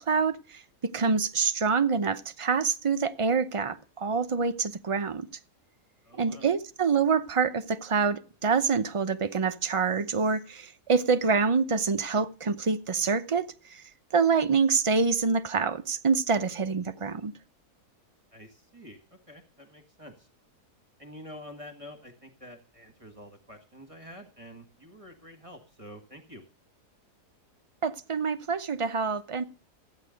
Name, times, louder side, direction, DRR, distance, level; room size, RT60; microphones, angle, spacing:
voice 1, 0.0-5.3 6.2-13.8 14.1-17.3 27.8-29.4, right 5 dB, 35° right, 0.5 m, -26 dB
voice 2, 6.0-6.5 18.3-20.3 21.0-26.4, equal, 20° right, 1.6 m, -48 dB
15.0 x 9.5 x 5.2 m
omnidirectional pair, 1.7 m